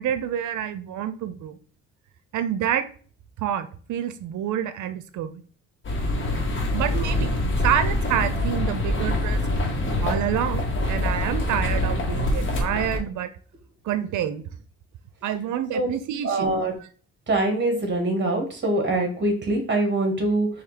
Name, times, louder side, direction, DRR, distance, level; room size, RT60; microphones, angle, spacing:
voice 1, 0.0-1.6 2.3-2.8 3.4-5.4 6.7-7.4 7.6-9.4 10.0-13.3 13.8-14.4 15.2-16.8, right 10 dB, 75° right, 12 dB, 0.6 m, -28 dB
sound 1, 5.8-13.0, left 1 dB, 40° left, 1.6 m, -25 dB
voice 2, 16.2-16.7 17.3-20.5, right 2 dB, 35° right, 3 dB, 1.9 m, -23 dB
4.3 x 2.9 x 4.1 m, 0.42 s
cardioid pair, 90°, 30 cm